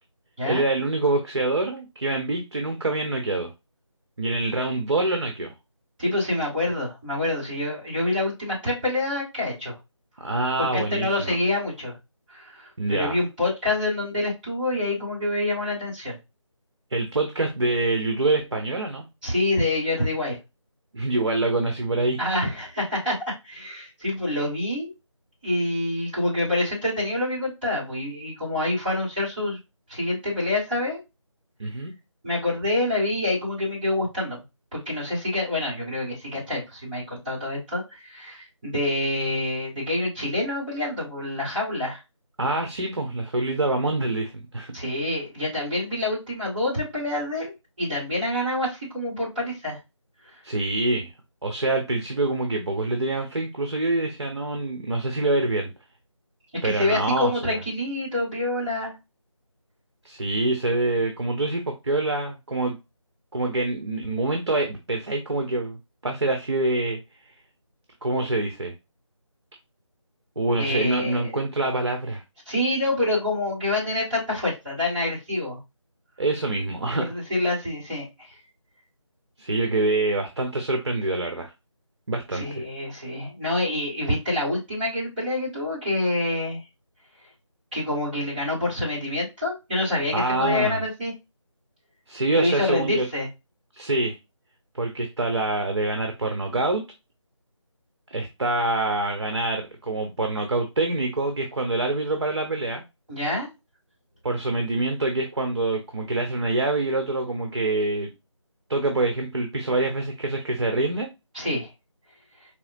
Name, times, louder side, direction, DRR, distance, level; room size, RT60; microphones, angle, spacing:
voice 1, 0.4-3.5 4.2-5.5 10.2-11.4 12.8-13.2 16.9-19.0 20.9-22.2 31.6-31.9 42.4-44.7 50.4-51.1 51.4-55.7 56.6-57.6 60.0-62.8 63.3-65.8 66.0-67.0 68.0-68.7 70.4-72.2 76.2-77.1 79.4-81.5 82.1-82.4 90.1-90.8 92.1-93.1 93.7-94.2 94.7-96.8 98.1-102.8 104.2-108.1 108.7-111.1, right 2 dB, 55° right, 4 dB, 0.9 m, -25 dB
voice 2, 6.0-9.8 10.6-12.0 12.3-16.2 19.2-20.4 22.2-23.1 23.4-24.9 25.4-29.6 29.9-31.0 32.2-34.4 34.7-42.0 44.7-49.8 56.6-58.9 70.6-71.3 72.5-75.6 77.0-78.4 82.3-86.6 87.7-91.1 92.3-93.3 103.1-103.5 111.3-111.7, left 2 dB, 20° right, -10 dB, 2.4 m, -27 dB
4.8 x 2.9 x 2.6 m, 0.24 s
figure-of-eight pair, 170°, 16 cm